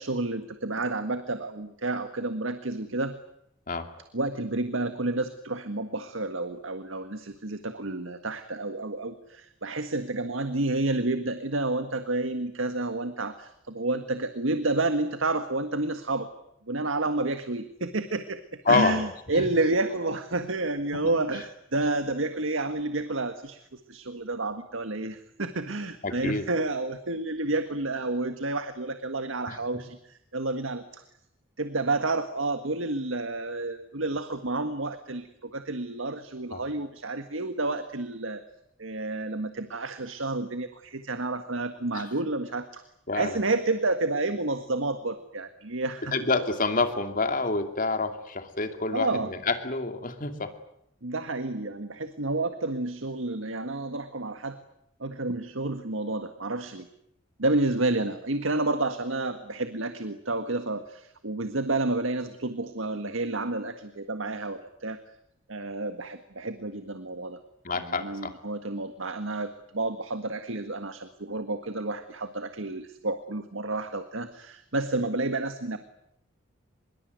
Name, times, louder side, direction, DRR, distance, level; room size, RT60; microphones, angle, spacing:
voice 1, 0.0-3.2 4.1-16.3 16.7-18.4 18.7-31.0 31.6-38.4 38.8-42.8 43.1-46.2 48.9-49.3 51.0-54.6 55.0-56.9 57.4-65.0 65.5-67.4 67.7-75.8, right 2 dB, 85° right, 9 dB, 1.7 m, -30 dB
voice 2, 18.7-19.0 19.3-19.5 20.9-21.1 26.0-26.5 29.5-29.6 36.5-36.6 41.9-42.0 43.1-43.3 46.1-50.5 67.6-68.3, left 3 dB, 45° left, 7 dB, 2.8 m, -27 dB
24.5 x 22.5 x 9.5 m, 0.76 s
head